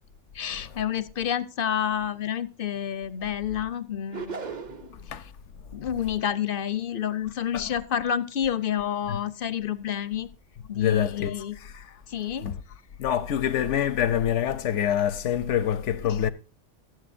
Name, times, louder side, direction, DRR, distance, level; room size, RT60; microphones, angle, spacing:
voice 1, 0.3-5.3 5.7-10.3 10.7-11.6 12.1-12.5 16.0-16.2, left 9 dB, 55° left, 0.7 m, -29 dB
sound 1, 4.1-5.0, right 5 dB, 40° right, 0.9 m, -36 dB
voice 2, 10.7-11.3 11.6-11.8 12.4-12.5 13.0-16.3, left 10 dB, 75° left, 1.0 m, -25 dB
20.5 x 8.0 x 2.6 m
omnidirectional pair, 1.3 m